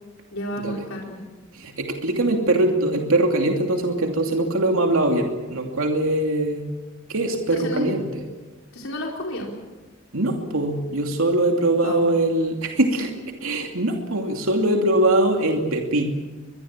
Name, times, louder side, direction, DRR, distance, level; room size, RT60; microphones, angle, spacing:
voice 1, 0.3-1.2 7.5-7.9 8.7-9.5 11.8-12.1, equal, 80° left, -1 dB, 4.4 m, -31 dB
voice 2, 1.5-6.7 7.1-8.2 10.1-13.1 13.4-16.1, right 1 dB, 85° right, 2 dB, 2.8 m, -22 dB
24.0 x 22.0 x 7.5 m, 1.3 s
head